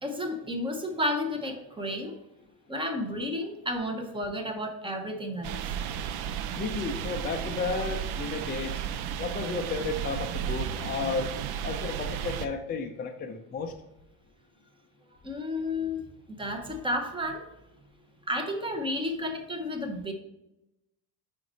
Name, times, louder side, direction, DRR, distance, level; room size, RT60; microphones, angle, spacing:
voice 1, 0.0-2.2 2.7-5.6 15.2-17.5 18.3-20.1, left 1 dB, 10° right, 5 dB, 0.7 m, -32 dB
sound 1, 5.4-12.5, right 9 dB, 60° right, 0.5 m, -33 dB
voice 2, 6.5-8.8 9.2-11.3 11.6-13.7, left 4 dB, 25° left, 2 dB, 0.4 m, -33 dB
5.1 x 4.7 x 4.0 m, 0.91 s
cardioid pair, 125°, 44 cm